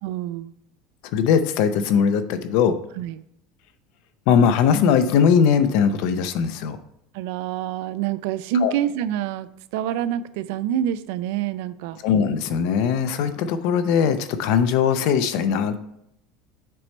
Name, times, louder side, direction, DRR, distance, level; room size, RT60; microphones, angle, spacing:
voice 1, 0.0-0.5 3.0-3.2 7.1-12.0, right 9 dB, 75° right, 14 dB, 0.3 m, -27 dB
voice 2, 1.1-2.8 4.3-6.8 8.6-8.7 12.0-15.8, left 7 dB, 65° left, 11 dB, 0.6 m, -20 dB
7.6 x 4.2 x 3.2 m, 0.76 s
cardioid pair, 150°, 0 cm